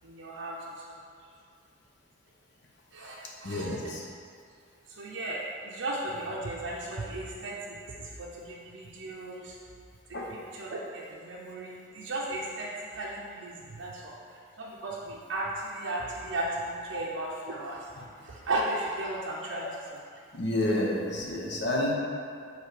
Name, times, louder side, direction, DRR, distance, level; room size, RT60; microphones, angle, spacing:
voice 1, 0.0-0.6 2.9-3.2 3.4-3.7 5.0-7.8 8.2-9.5 10.5-14.1 14.6-17.9 18.3-19.7, right 1 dB, 75° right, -5 dB, 0.6 m, -35 dB
voice 2, 3.4-4.0 10.1-10.3 17.9-18.1 19.6-19.7 20.3-21.9, left 1 dB, 60° left, -2 dB, 0.8 m, -30 dB
6.6 x 3.2 x 4.8 m, 2.3 s
head